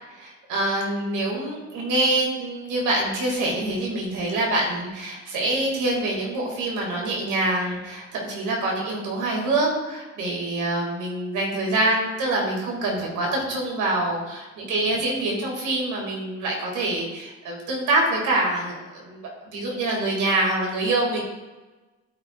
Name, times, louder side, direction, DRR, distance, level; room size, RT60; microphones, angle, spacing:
voice 1, 0.2-19.2 19.4-21.2, right 2 dB, 90° right, -2 dB, 2.5 m, -25 dB
13.0 x 4.9 x 2.5 m, 1.2 s
cardioid pair, 90°, 30 cm